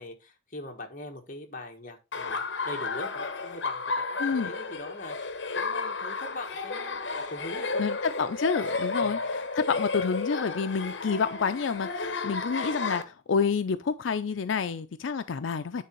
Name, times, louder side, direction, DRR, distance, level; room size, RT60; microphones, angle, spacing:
voice 1, 0.0-7.9 9.0-9.3, left 1 dB, 45° left, 1.6 m, -42 dB
Laughter, 2.1-13.0, left 4 dB, 70° left, 1.1 m, -32 dB
voice 2, 4.2-4.5 7.8-15.8, left 5 dB, 90° left, 0.5 m, -29 dB
9.4 x 3.9 x 4.4 m
head